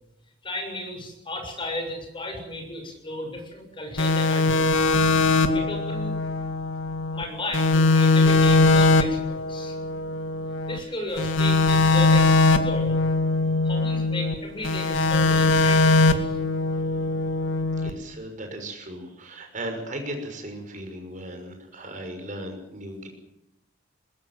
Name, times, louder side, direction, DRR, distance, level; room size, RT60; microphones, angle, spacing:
voice 1, 0.4-4.9 5.3-6.2 7.1-9.8 10.7-13.1 13.6-16.4, left 1 dB, 25° left, 3 dB, 7.1 m, -34 dB
sound 1, 4.0-7.2 7.5-10.8 11.2-14.4 14.6-17.9, left 3 dB, 85° left, 2.4 m, -21 dB
voice 2, 17.8-23.1, right 1 dB, 40° right, 5 dB, 6.1 m, -36 dB
21.5 x 21.0 x 7.7 m, 0.87 s
head